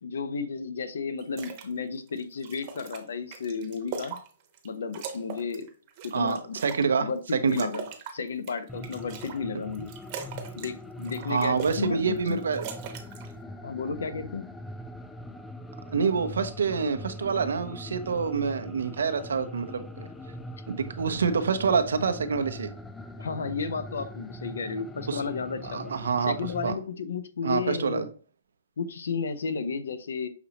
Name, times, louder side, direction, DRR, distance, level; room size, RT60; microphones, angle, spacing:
voice 1, 0.0-4.2 4.6-5.7 6.0-6.6 7.0-7.9 8.1-9.9 10.6-12.4 13.6-14.5 23.2-25.9 26.2-28.1 28.8-30.3, left 5 dB, 80° left, 0.7 m, -33 dB
sound 1, 1.2-1.7 2.1-4.7 4.9-6.9 7.3-9.4 9.7-10.7 11.0-11.9 12.2-13.3, right 6 dB, 35° right, 0.9 m, -40 dB
voice 2, 6.1-7.7 11.3-12.6 15.9-20.1 20.7-22.7 25.1-25.2 25.6-26.4 26.6-26.8 27.4-28.1, right 5 dB, 80° right, 0.6 m, -27 dB
sound 2, 8.7-26.7, left 1 dB, 5° left, 0.3 m, -42 dB
5.9 x 2.8 x 2.9 m
hypercardioid pair, 155°, 0 cm